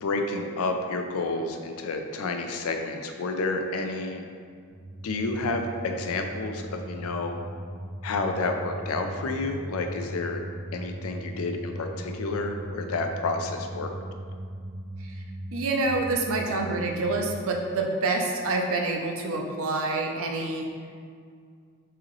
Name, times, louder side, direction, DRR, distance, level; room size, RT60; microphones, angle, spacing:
voice 1, 0.0-4.3 5.0-7.4 8.0-10.4 10.7-13.9, left 3 dB, 70° left, 5 dB, 0.4 m, -30 dB
sound 1, 4.7-17.3, right 1 dB, 10° left, 0.6 m, -38 dB
voice 2, 15.5-20.7, right 2 dB, 65° right, 2 dB, 0.5 m, -27 dB
4.7 x 2.9 x 3.1 m, 2.1 s
head